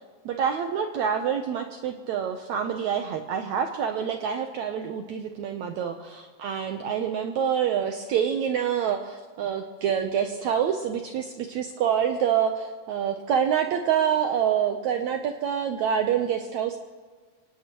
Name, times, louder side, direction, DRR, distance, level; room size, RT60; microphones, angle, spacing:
voice 1, 0.3-16.8, right 8 dB, 75° right, 5 dB, 1.7 m, -26 dB
24.5 x 19.0 x 3.0 m, 1.5 s
omnidirectional pair, 4.1 m